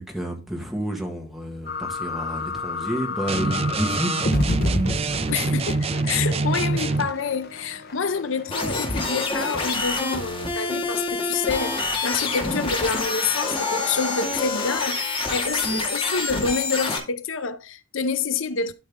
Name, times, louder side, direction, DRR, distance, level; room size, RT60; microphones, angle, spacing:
voice 1, 0.0-4.1, equal, ahead, 1.9 m, -30 dB
sound 1, 1.6-10.0, left 2 dB, 50° left, 0.9 m, -31 dB
sound 2, 3.3-7.1, right 3 dB, 30° right, 0.4 m, -25 dB
voice 2, 5.3-18.7, left 5 dB, 70° left, 0.6 m, -27 dB
sound 3, 8.5-17.0, left 3 dB, 25° left, 2.1 m, -27 dB
12.0 x 5.3 x 3.6 m
head